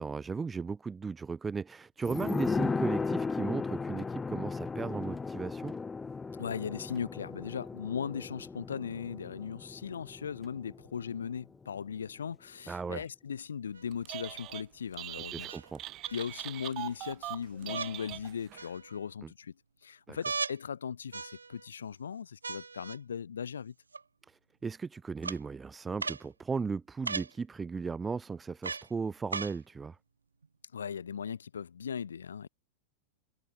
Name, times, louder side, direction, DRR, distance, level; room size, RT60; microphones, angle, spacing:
voice 1, 0.0-5.8 12.7-13.1 15.3-15.9 19.2-19.3 20.1-20.2 24.3-30.0, right 5 dB, 15° right, 2.5 m, -36 dB
sound 1, 2.0-11.3 11.6-11.7, left 4 dB, 15° left, 1.5 m, -36 dB
voice 2, 6.3-15.5 16.1-19.5 19.8-23.7 30.7-32.5, left 7 dB, 70° left, 3.2 m, -38 dB
sound 2, 13.7-13.8 15.5-16.2 17.7-17.9 18.6-19.1 20.2-20.6 21.1-21.7 22.4-23.0 23.9-24.0 25.2-25.4 26.0-26.3 27.0-27.3 28.6-28.9 29.3-29.6 30.4-30.5, right 4 dB, 75° right, 0.8 m, -37 dB
Telephone, 13.9-14.6 14.9-18.6, right 16 dB, 35° right, 2.9 m, -41 dB
figure-of-eight pair, 90°, 0 cm